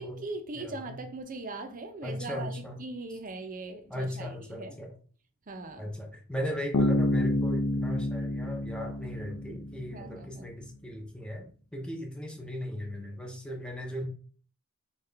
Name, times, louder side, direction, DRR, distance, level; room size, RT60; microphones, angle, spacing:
voice 1, 0.0-4.8 5.5-5.9 9.9-10.5, right 2 dB, 40° right, 0.6 m, -40 dB
voice 2, 0.6-1.0 2.0-2.8 3.9-5.0 5.8-14.1, equal, 5° left, 0.7 m, -37 dB
Bass guitar, 6.7-10.2, left 2 dB, 90° left, 0.5 m, -29 dB
5.6 x 2.4 x 3.3 m
head